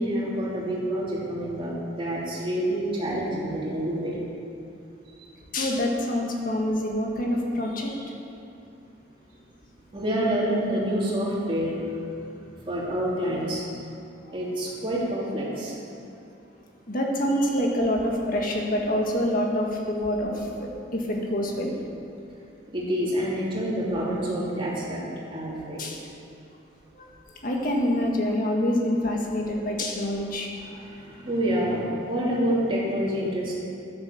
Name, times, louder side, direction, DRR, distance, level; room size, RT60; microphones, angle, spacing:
voice 1, 0.0-4.2 9.9-12.1 12.7-13.6 14.3-15.7 22.7-25.0 25.3-25.8 30.6-33.6, equal, 25° right, -6 dB, 2.9 m, -27 dB
voice 2, 5.5-8.1 16.9-21.8 25.8-26.0 26.9-27.1 27.4-30.5, left 1 dB, 45° left, 0 dB, 1.8 m, -26 dB
10.5 x 9.9 x 7.0 m, 2.8 s
head